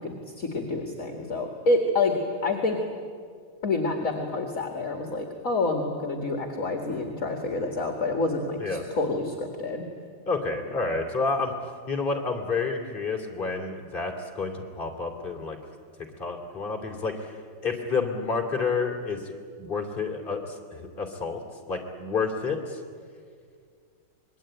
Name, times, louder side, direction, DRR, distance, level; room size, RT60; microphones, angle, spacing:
voice 1, 0.0-2.1 2.4-2.8 3.6-9.9, left 2 dB, 45° left, 3 dB, 2.2 m, -28 dB
voice 2, 10.3-11.5 11.9-15.6 16.0-17.3 17.6-21.4 21.7-22.8, left 4 dB, 25° left, 2 dB, 2.9 m, -29 dB
26.5 x 21.0 x 9.1 m, 2.1 s
omnidirectional pair, 2.0 m